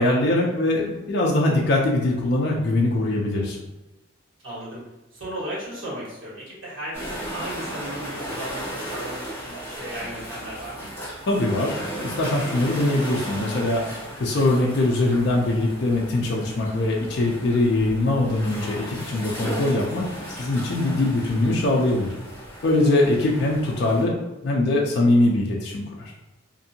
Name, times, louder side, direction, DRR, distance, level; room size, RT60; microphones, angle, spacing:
voice 1, 0.0-3.6 11.3-13.8 14.2-22.1 22.6-24.2 24.4-26.1, left 2 dB, 55° left, -2 dB, 0.4 m, -22 dB
voice 2, 4.4-4.8 5.1-10.9 14.1-14.6 21.0-21.5 22.8-23.1, right 1 dB, 65° right, -8 dB, 1.4 m, -36 dB
sound 1, 6.9-24.0, right 1 dB, 10° left, 1.1 m, -35 dB
2.6 x 2.6 x 2.7 m, 1.0 s
head